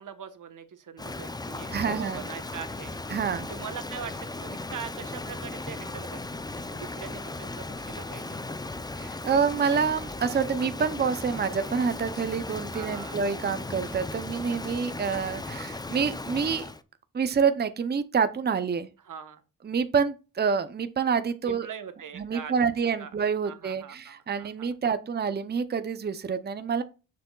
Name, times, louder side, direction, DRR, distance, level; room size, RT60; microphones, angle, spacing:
voice 1, 0.0-3.0 3.5-6.4 6.7-8.4 12.7-13.2 19.0-19.4 21.5-22.7 23.0-23.1 23.4-24.7, right 7 dB, 60° right, 1.1 m, -42 dB
Rain, 1.0-16.8, left 2 dB, 10° left, 0.5 m, -37 dB
sound 1, 1.7-2.0 2.9-3.1 4.1-4.3 5.3-5.7 6.5-6.7 7.8-7.9 9.0-9.3 10.2-10.4 11.4-11.6 12.6-13.0 13.8-14.0 15.0-15.2, left 2 dB, 65° left, 2.1 m, -51 dB
voice 2, 1.7-2.3 3.1-3.5 9.0-16.7 17.1-18.9 19.6-21.7 22.2-26.8, right 6 dB, 30° right, 0.6 m, -27 dB
6.8 x 6.6 x 2.3 m
cardioid pair, 85°, 35 cm